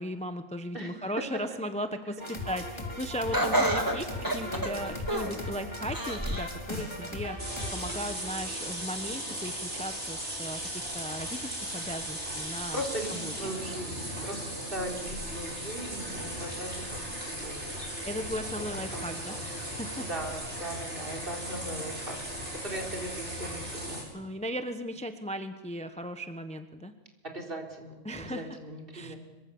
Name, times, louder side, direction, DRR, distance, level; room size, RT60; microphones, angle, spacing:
voice 1, 0.0-4.1 4.3-7.4 7.7-12.8 13.1-13.6 18.0-19.3 19.6-20.1 24.1-26.9 28.0-28.5 28.9-29.2, equal, 5° left, 8 dB, 1.0 m, -37 dB
voice 2, 0.7-1.2 1.5-1.6 3.9-5.0 7.9-8.0 12.7-14.4 14.7-18.3 18.6-19.7 20.0-22.4 22.6-24.1 27.3-29.2, right 1 dB, 45° right, 2 dB, 4.3 m, -39 dB
sound 1, 2.2-7.9, left 1 dB, 20° left, 3.7 m, -38 dB
Laughter, 3.3-5.4 5.9-6.5 7.0-7.1 8.1-8.2, right 1 dB, 15° right, 2.7 m, -29 dB
sound 2, 7.4-24.0, right 1 dB, 60° right, 7.6 m, -37 dB
25.5 x 24.0 x 7.1 m, 1.2 s
omnidirectional pair, 1.3 m